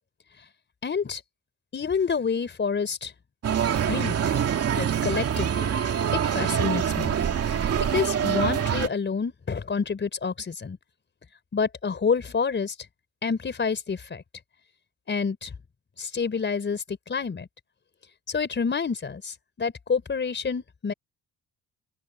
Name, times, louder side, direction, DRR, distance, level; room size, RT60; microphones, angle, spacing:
voice 1, 0.8-1.2 1.7-3.1 3.9-4.3 4.8-5.8 6.3-7.2 7.8-10.8 11.5-12.7 13.2-14.2 15.1-15.5 16.0-17.5 18.3-20.9, left 5 dB, 40° left, 4.6 m, -28 dB
sound 1, 3.4-8.9, right 8 dB, 55° right, 2.2 m, -25 dB
open air
cardioid pair, 90°, 30 cm